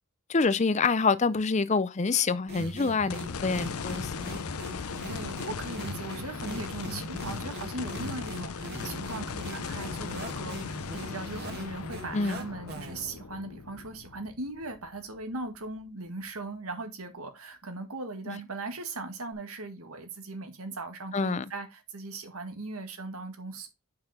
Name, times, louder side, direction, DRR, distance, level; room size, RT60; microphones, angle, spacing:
voice 1, 0.3-4.4 12.1-12.4 18.3-18.4 21.1-21.4, left 4 dB, 30° left, 0.5 m, -26 dB
sound 1, 2.5-13.1, right 1 dB, 50° right, 1.8 m, -41 dB
sound 2, 3.1-15.4 15.9-16.0 19.3-19.4, left 5 dB, 90° left, 0.7 m, -38 dB
voice 2, 4.8-23.7, right 2 dB, 90° right, 1.9 m, -39 dB
6.8 x 5.7 x 4.1 m
head